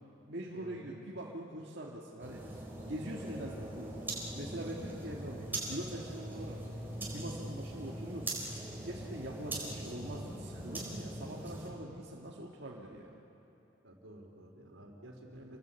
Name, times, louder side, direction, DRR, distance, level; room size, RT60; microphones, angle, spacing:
voice 1, 0.3-2.4 2.9-6.6 7.1-8.5 8.8-13.2 15.3-15.6, right 1 dB, 55° right, -3 dB, 1.9 m, -43 dB
sound 1, 2.2-11.7, right 1 dB, 10° right, 4.2 m, -41 dB
voice 2, 13.8-15.6, right 1 dB, 80° right, 2 dB, 3.8 m, -52 dB
28.5 x 20.5 x 8.3 m, 2.9 s
head